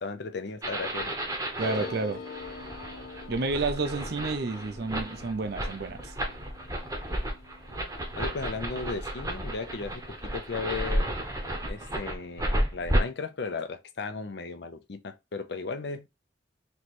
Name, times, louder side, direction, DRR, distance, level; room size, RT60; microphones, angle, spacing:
voice 1, 0.0-1.1 1.6-1.9 7.7-10.0 10.3-11.1 11.7-16.1, left 4 dB, 55° left, 0.6 m, -36 dB
sound 1, 0.6-13.0, right 1 dB, 15° right, 0.9 m, -32 dB
sound 2, 1.6-10.7 11.0-11.1 11.3-11.9, left 5 dB, 90° left, 1.0 m, -46 dB
voice 2, 1.6-2.2 3.3-6.1, right 3 dB, 50° right, 0.5 m, -30 dB
3.2 x 3.1 x 4.3 m
head